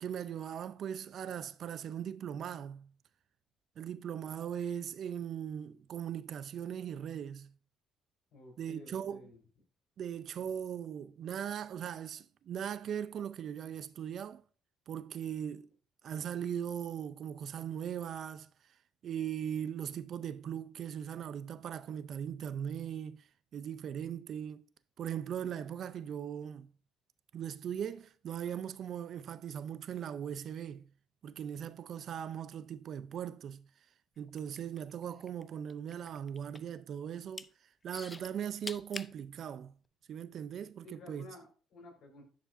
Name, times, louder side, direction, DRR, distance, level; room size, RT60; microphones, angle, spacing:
voice 1, 0.0-2.9 3.8-7.5 8.6-9.3 10.0-14.4 14.9-15.7 16.0-18.5 19.0-23.3 23.5-24.6 25.0-26.7 27.3-30.9 31.2-33.7 34.2-37.5 37.8-39.7 40.1-41.3, right 9 dB, 55° right, 0.4 m, -39 dB
voice 2, 8.3-9.4 40.8-42.2, left 2 dB, 60° left, 3.9 m, -53 dB
sound 1, 34.3-35.4 35.7-36.8 37.1-37.5 37.9-39.1 39.8-39.9, left 3 dB, 20° left, 0.4 m, -44 dB
10.0 x 5.0 x 2.6 m
cardioid pair, 105°, 0 cm